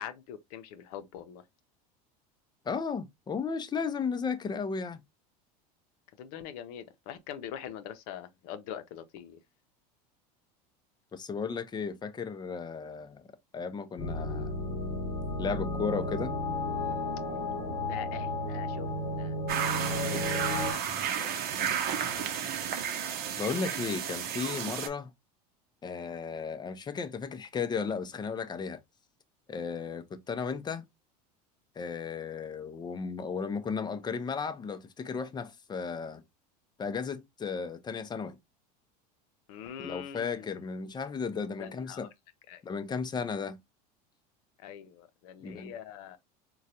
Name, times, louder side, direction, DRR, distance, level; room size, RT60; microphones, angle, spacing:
voice 1, 0.0-1.4 6.2-9.4 17.8-19.3 19.6-21.5 22.1-22.5 39.5-40.5 41.6-42.1 42.5-42.6 44.6-46.2, left 9 dB, 65° left, 0.7 m, -43 dB
voice 2, 2.7-5.0 11.1-13.2 13.5-14.5 15.4-16.3 23.4-25.1 25.8-28.8 29.5-30.8 31.8-36.2 36.8-38.4 39.8-42.1 42.6-43.6 45.4-45.7, left 5 dB, 20° left, 0.6 m, -34 dB
sound 1, 14.0-20.7, left 1 dB, 40° left, 1.0 m, -33 dB
sound 2, 19.5-24.9, right 8 dB, 50° right, 0.7 m, -32 dB
3.8 x 2.2 x 2.8 m
hypercardioid pair, 100°, 21 cm